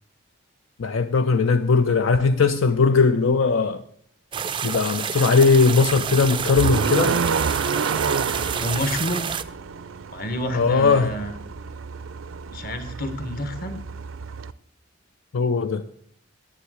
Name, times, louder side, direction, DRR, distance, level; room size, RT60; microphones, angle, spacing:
voice 1, 0.8-3.8 4.6-7.2 10.5-11.1 15.3-15.8, left 4 dB, 75° left, 0.5 m, -19 dB
sound 1, 4.3-9.4, right 7 dB, 25° right, 0.3 m, -29 dB
sound 2, 5.5-14.5, right 5 dB, 80° right, 0.5 m, -29 dB
voice 2, 8.6-9.3 10.1-11.3 12.5-13.8, left 1 dB, 45° left, 1.3 m, -29 dB
10.0 x 6.9 x 6.3 m
head